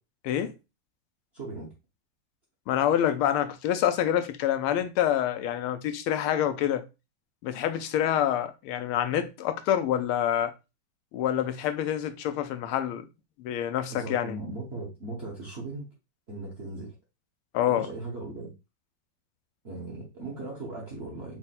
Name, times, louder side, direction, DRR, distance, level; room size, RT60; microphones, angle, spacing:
voice 1, 1.3-1.7 13.9-15.9 16.3-16.9 17.7-18.5 19.6-21.4, right 2 dB, 45° right, 0.9 m, -38 dB
voice 2, 2.7-6.8 7.4-10.5 11.1-13.1 13.4-14.4 17.5-17.9, left 10 dB, 90° left, 1.5 m, -27 dB
4.5 x 2.1 x 4.0 m
omnidirectional pair, 2.3 m